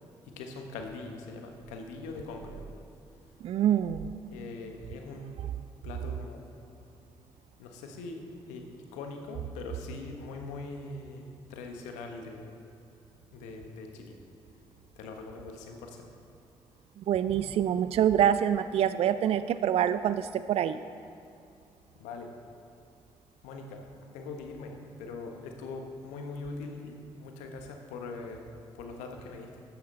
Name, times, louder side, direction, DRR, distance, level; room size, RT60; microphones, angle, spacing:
voice 1, 0.4-2.6 4.3-5.3 5.8-6.4 7.6-8.2 8.5-8.7 8.9-11.2 11.5-12.6 13.3-14.1 15.0-16.1 21.9-22.3 23.4-23.9 24.1-28.4 28.7-29.6, left 3 dB, 75° left, 3 dB, 1.3 m, -42 dB
voice 2, 3.4-4.1 17.1-20.8, right 10 dB, 55° right, 13 dB, 0.4 m, -26 dB
13.0 x 9.4 x 4.0 m, 2.5 s
hypercardioid pair, 40°, 12 cm